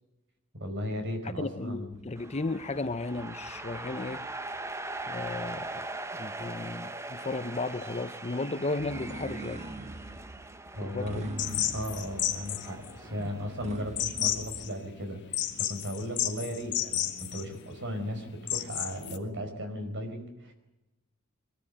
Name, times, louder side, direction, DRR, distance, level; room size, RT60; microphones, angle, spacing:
voice 1, 0.5-1.9 10.7-20.5, equal, 60° right, 5.0 m, -36 dB
voice 2, 1.4-4.3 5.1-5.9 6.2-9.6 10.8-11.3, left 2 dB, 30° left, 0.8 m, -34 dB
sound 1, 1.9-4.0 8.8-14.7, right 2 dB, 35° right, 1.1 m, -45 dB
sound 2, 2.2-13.7, right 2 dB, 15° right, 0.8 m, -41 dB
sound 3, 11.4-19.2, left 11 dB, 55° left, 1.8 m, -33 dB
23.5 x 14.0 x 9.0 m
head